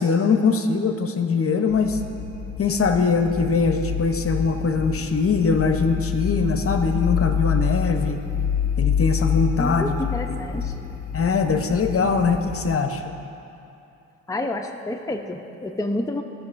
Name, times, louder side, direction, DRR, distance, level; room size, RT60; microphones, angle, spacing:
voice 1, 0.0-2.0 2.6-8.2 8.8-9.9 11.1-13.0, left 5 dB, 40° left, 6 dB, 0.9 m, -22 dB
sound 1, 1.7-12.8, left 7 dB, 25° left, 1.5 m, -27 dB
voice 2, 9.6-10.9 14.3-16.2, left 1 dB, 10° left, 3 dB, 0.8 m, -29 dB
17.5 x 6.5 x 2.6 m, 2.7 s
hypercardioid pair, 50°, 34 cm